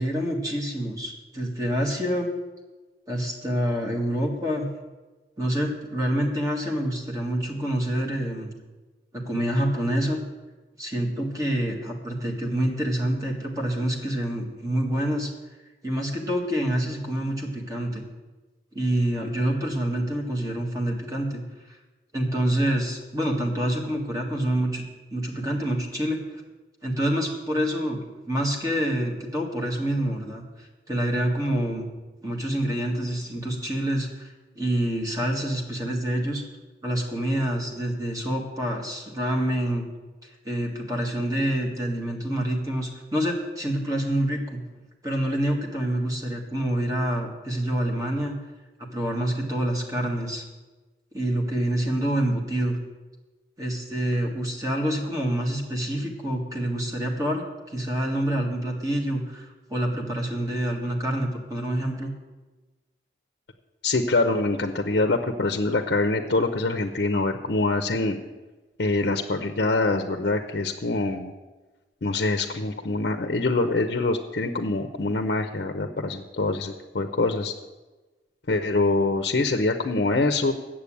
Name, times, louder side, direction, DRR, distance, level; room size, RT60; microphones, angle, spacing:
voice 1, 0.0-2.3 3.1-4.7 5.4-8.5 9.1-10.2 10.8-15.3 15.8-18.0 18.7-21.4 22.1-24.8 25.1-26.4 26.8-28.0 28.3-31.9 32.2-34.3 34.5-36.4 36.8-39.9 40.4-44.6 45.0-48.4 48.8-50.4 51.1-52.8 53.6-62.1, right 1 dB, 20° right, 0 dB, 1.6 m, -27 dB
voice 2, 63.8-68.2 68.8-71.3 72.0-77.5 78.5-80.5, left 2 dB, 70° left, 7 dB, 0.7 m, -24 dB
8.2 x 7.5 x 8.6 m, 1.2 s
head